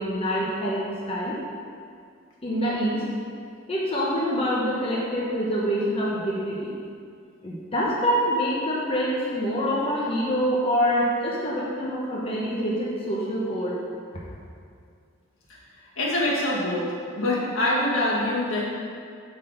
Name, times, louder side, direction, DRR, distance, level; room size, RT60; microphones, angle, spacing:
voice 1, 0.0-1.3 2.4-3.0 3.7-6.7 7.4-13.8, equal, 30° left, -6 dB, 1.1 m, -26 dB
voice 2, 16.0-16.9 17.1-18.6, left 1 dB, 75° left, -5 dB, 1.9 m, -24 dB
8.2 x 3.9 x 6.6 m, 2.2 s
head